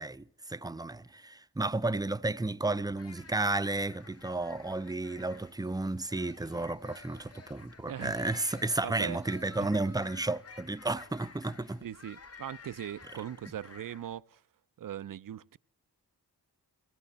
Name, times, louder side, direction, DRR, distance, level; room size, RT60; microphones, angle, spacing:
voice 1, 0.0-11.8, right 2 dB, 10° right, 0.5 m, -32 dB
sound 1, 3.0-14.2, left 4 dB, 35° left, 0.8 m, -52 dB
voice 2, 7.9-8.2 8.8-9.2 11.8-14.4 14.8-15.6, right 10 dB, 55° right, 0.5 m, -40 dB
22.0 x 15.5 x 4.1 m
cardioid pair, 45°, 41 cm